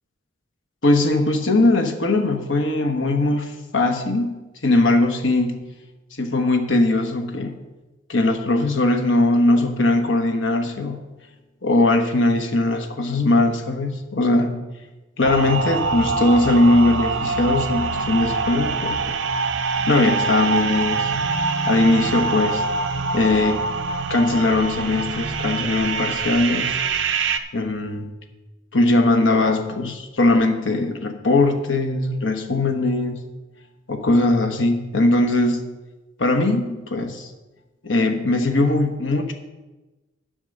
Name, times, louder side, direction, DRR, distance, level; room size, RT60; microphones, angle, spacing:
voice 1, 0.8-5.6 6.2-7.6 8.1-11.0 11.6-14.6 15.2-19.2 19.6-21.1 21.7-22.6 23.1-23.6 24.1-26.7 27.5-28.1 28.7-33.2 33.9-35.6 36.2-37.3 37.8-39.3, left 2 dB, 80° left, 6 dB, 1.3 m, -20 dB
sound 1, 15.2-27.4, right 4 dB, 70° right, 0.6 m, -24 dB
9.0 x 7.6 x 6.5 m, 1.1 s
head